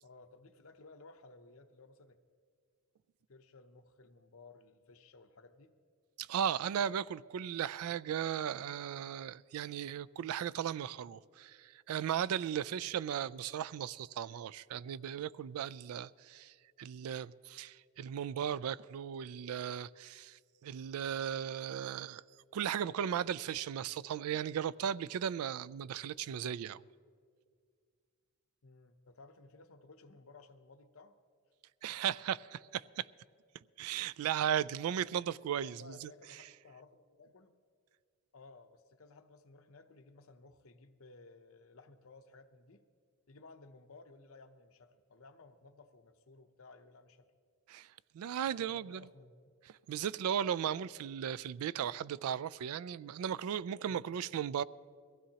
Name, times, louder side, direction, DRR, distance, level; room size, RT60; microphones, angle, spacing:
voice 1, 0.0-2.2 3.3-5.7 28.6-31.2 35.6-37.5 38.3-42.8 43.3-47.3 48.3-49.3 53.9-54.1, left 3 dB, 70° left, 0.7 m, -57 dB
voice 2, 6.2-22.2 22.5-26.8 31.8-33.1 33.8-36.1 47.7-47.9 48.1-49.0 49.9-54.6, right 9 dB, 80° right, 0.3 m, -36 dB
22.0 x 15.5 x 2.9 m
head